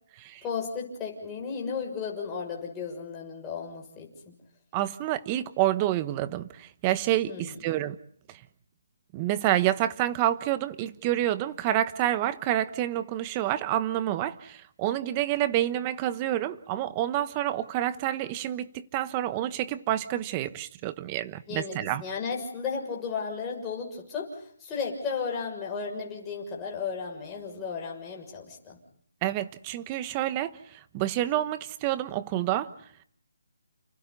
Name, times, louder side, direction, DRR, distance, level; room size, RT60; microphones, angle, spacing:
voice 1, 0.4-4.3 7.3-7.6 21.5-28.8, left 5 dB, 15° left, -1 dB, 6.7 m, -34 dB
voice 2, 4.7-8.0 8.3-8.4 9.1-22.0 29.2-32.7, right 13 dB, 20° right, 14 dB, 1.1 m, -28 dB
30.0 x 29.5 x 4.1 m, 0.64 s
hypercardioid pair, 165°, 0 cm